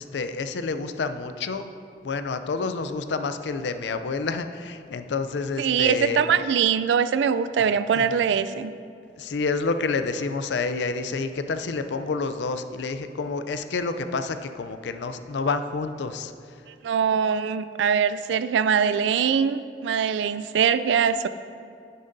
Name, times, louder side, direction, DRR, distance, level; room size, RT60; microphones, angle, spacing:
voice 1, 0.0-1.7 2.0-6.5 7.6-8.0 9.2-16.3, left 4 dB, 75° left, 9 dB, 0.4 m, -29 dB
voice 2, 5.6-8.7 16.8-21.3, right 7 dB, 85° right, 13 dB, 0.3 m, -22 dB
10.0 x 9.4 x 2.6 m, 2.4 s
head